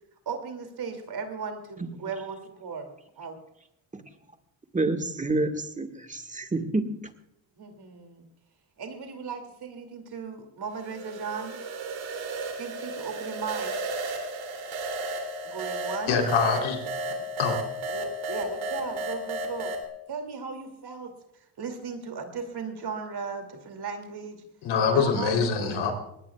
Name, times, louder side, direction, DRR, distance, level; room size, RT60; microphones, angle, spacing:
voice 1, 0.3-3.4 7.6-8.3 8.8-11.6 12.6-13.8 15.4-16.2 17.9-19.8 20.1-21.1 21.6-24.4 24.9-25.9, right 5 dB, 55° right, 2.7 m, -37 dB
voice 2, 4.7-7.1, right 2 dB, 15° right, 1.6 m, -28 dB
sound 1, 10.8-19.8, right 1 dB, 75° right, 3.1 m, -33 dB
voice 3, 16.1-16.8 17.4-17.6 24.6-25.9, left 5 dB, 80° left, 3.6 m, -24 dB
21.5 x 18.5 x 2.4 m
cardioid pair, 80°, 47 cm